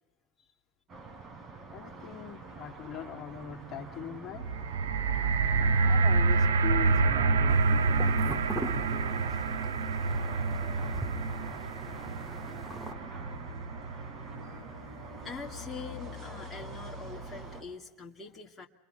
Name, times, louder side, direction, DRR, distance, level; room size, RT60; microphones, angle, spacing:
sound 1, 0.9-17.6, right 2 dB, 35° right, 4.5 m, -45 dB
voice 1, 1.7-4.5 5.9-9.4, left 10 dB, 35° left, 0 dB, 1.9 m, -41 dB
sound 2, 4.4-14.6 15.3-15.4, right 4 dB, 90° right, 0.7 m, -28 dB
sound 3, 7.5-12.9, right 2 dB, 10° right, 2.4 m, -42 dB
voice 2, 14.4-18.7, left 4 dB, 15° left, 0 dB, 2.1 m, -44 dB
29.0 x 22.0 x 5.6 m, 1.0 s
hypercardioid pair, 100°, 0 cm